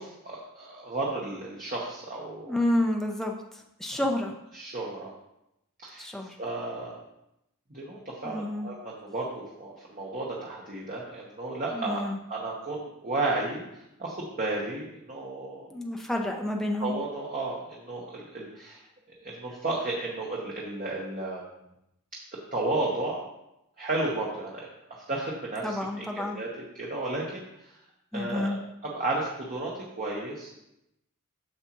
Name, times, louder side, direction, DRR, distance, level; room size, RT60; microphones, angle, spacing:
voice 1, 0.0-2.6 3.9-4.0 4.5-5.1 5.8-6.1 6.4-7.0 7.7-12.0 12.3-15.7 16.8-18.8 19.2-21.4 22.5-23.2 23.8-27.8 28.1-30.5, right 2 dB, 40° right, -4 dB, 1.1 m, -33 dB
voice 2, 2.5-3.3 3.8-4.3 6.0-6.4 8.2-8.7 11.7-12.2 15.7-17.0 25.6-26.4 28.1-28.6, left 1 dB, ahead, 1 dB, 0.6 m, -29 dB
7.7 x 7.0 x 3.0 m, 0.86 s
head